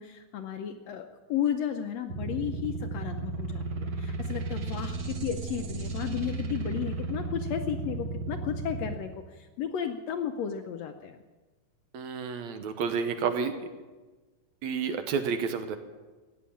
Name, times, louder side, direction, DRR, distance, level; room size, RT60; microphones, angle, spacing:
voice 1, 0.0-11.2, left 8 dB, 75° left, 6 dB, 1.6 m, -34 dB
sound 1, 2.1-8.9, right 3 dB, 50° right, 1.3 m, -34 dB
voice 2, 11.9-13.5 14.6-15.8, right 6 dB, 70° right, 8 dB, 2.0 m, -30 dB
14.5 x 9.4 x 8.6 m, 1.3 s
omnidirectional pair, 3.6 m